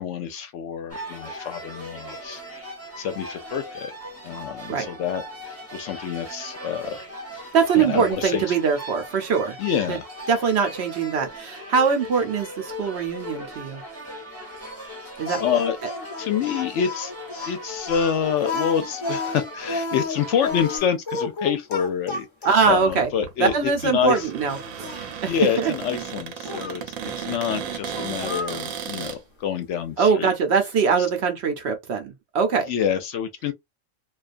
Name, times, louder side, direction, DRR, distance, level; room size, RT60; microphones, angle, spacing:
voice 1, 0.0-2.4 3.0-3.9 4.2-7.0 7.3-7.5 7.8-8.6 9.6-10.1 14.8-15.0 15.4-15.8 16.2-17.1 17.5-22.3 22.7-24.3 25.0-30.3 32.7-33.5, left 8 dB, 70° left, 0.8 m, -27 dB
sound 1, 0.9-20.8, left 1 dB, 15° right, 0.7 m, -38 dB
voice 2, 7.5-9.6 9.9-10.0 10.3-13.8 15.2-15.4 22.4-23.1 23.4-25.3 25.6-25.7 30.0-32.7, right 5 dB, 60° right, 0.8 m, -22 dB
Speech, 15.3-22.8 23.5-23.6 24.1-25.0 26.5-26.8 27.9-28.7, left 3 dB, 35° left, 0.5 m, -32 dB
Cupboard open or close, 22.5-29.2, right 7 dB, 85° right, 1.0 m, -35 dB
2.4 x 2.3 x 2.4 m
omnidirectional pair, 1.4 m